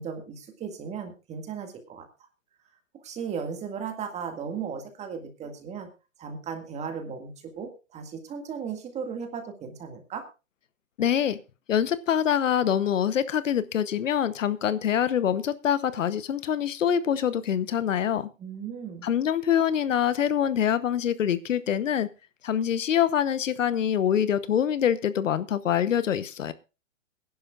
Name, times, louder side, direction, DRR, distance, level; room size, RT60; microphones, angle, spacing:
voice 1, 0.0-2.1 3.0-5.9 6.2-10.2 18.4-19.1, right 6 dB, 15° right, 6 dB, 2.0 m, -36 dB
voice 2, 11.0-11.4 11.7-18.3 19.0-22.1 22.4-26.5, left 9 dB, 75° left, 16 dB, 1.0 m, -25 dB
21.5 x 11.0 x 2.5 m, 0.29 s
hypercardioid pair, 140°, 38 cm